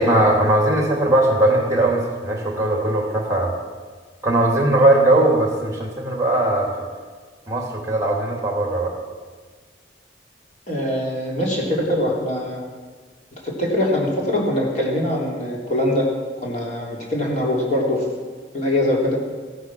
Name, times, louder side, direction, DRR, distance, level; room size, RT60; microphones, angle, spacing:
voice 1, 0.0-3.5 4.2-6.9 7.5-8.9, right 1 dB, 20° right, 1 dB, 2.6 m, -19 dB
voice 2, 10.7-12.6 13.4-16.1 16.4-18.0 18.5-19.2, left 1 dB, 40° left, -3 dB, 3.5 m, -22 dB
15.5 x 10.0 x 6.2 m, 1.5 s
head